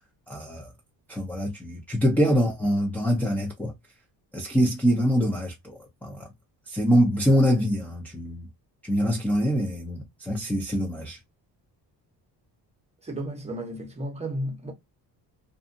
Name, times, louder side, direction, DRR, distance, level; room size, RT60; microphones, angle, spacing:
voice 1, 0.3-0.7 1.1-3.7 4.3-6.3 6.7-8.5 8.8-11.2, equal, 5° left, 0.5 m, -24 dB
voice 2, 13.0-14.7, right 1 dB, 15° right, 0.9 m, -33 dB
2.6 x 2.5 x 2.5 m
cardioid pair, 150°, 44 cm